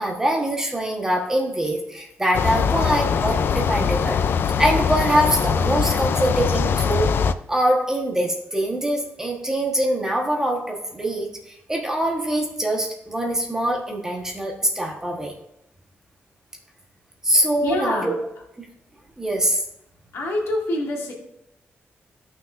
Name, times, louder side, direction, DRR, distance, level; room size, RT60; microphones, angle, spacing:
voice 1, 0.0-4.2 4.6-7.1 7.5-15.3 17.2-18.2 18.6-18.7 19.2-19.6, right 1 dB, 10° right, 0 dB, 1.2 m, -23 dB
sound 1, 2.3-7.3, left 6 dB, 55° left, 0.4 m, -22 dB
voice 2, 17.6-18.1 20.1-21.1, left 1 dB, 85° left, -3 dB, 2.2 m, -25 dB
14.0 x 6.1 x 2.5 m, 0.83 s
wide cardioid pair, 170°, 4 cm